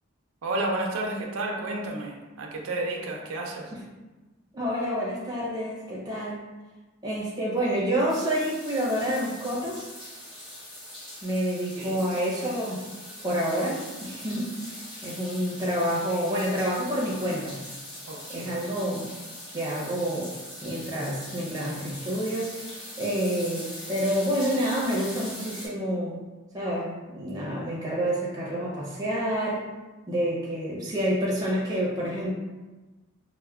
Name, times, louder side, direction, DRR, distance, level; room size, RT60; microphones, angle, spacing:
voice 1, 0.4-3.7 11.8-12.0 18.1-18.6, right 2 dB, 80° right, 0 dB, 0.5 m, -31 dB
voice 2, 4.5-6.4 7.0-9.9 11.2-12.8 13.2-17.6 18.3-19.2 19.5-20.3 20.6-22.5 23.0-26.2 26.5-29.6 30.1-32.3, equal, 15° right, -5 dB, 0.5 m, -28 dB
sound 1, 8.1-25.7, left 1 dB, 20° left, 0.9 m, -42 dB
4.3 x 2.1 x 2.3 m, 1.2 s
head